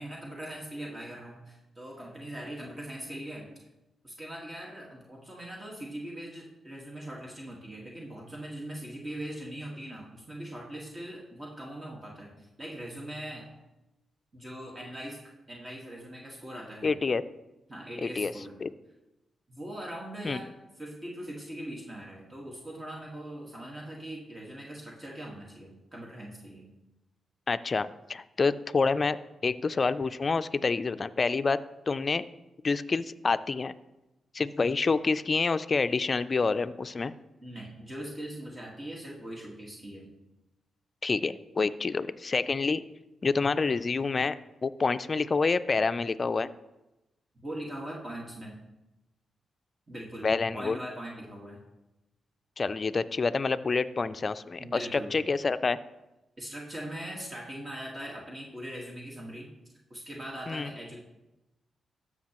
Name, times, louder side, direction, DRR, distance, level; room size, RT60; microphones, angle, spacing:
voice 1, 0.0-3.5 4.0-13.5 14.3-15.2 15.5-17.0 17.7-18.6 19.5-26.7 37.4-40.2 47.4-48.6 49.9-51.7 54.6-55.2 56.4-61.0, right 1 dB, 30° right, -2 dB, 1.7 m, -41 dB
voice 2, 16.8-17.2 18.0-18.3 18.6-18.7 20.2-20.4 27.5-29.2 29.4-31.6 31.9-32.2 32.6-33.7 34.3-37.1 41.0-42.8 43.2-44.4 44.6-46.5 50.2-50.8 52.6-55.8 60.5-60.7, left 4 dB, 45° left, 13 dB, 0.4 m, -27 dB
13.0 x 6.2 x 3.0 m, 0.98 s
supercardioid pair, 45°, 0 cm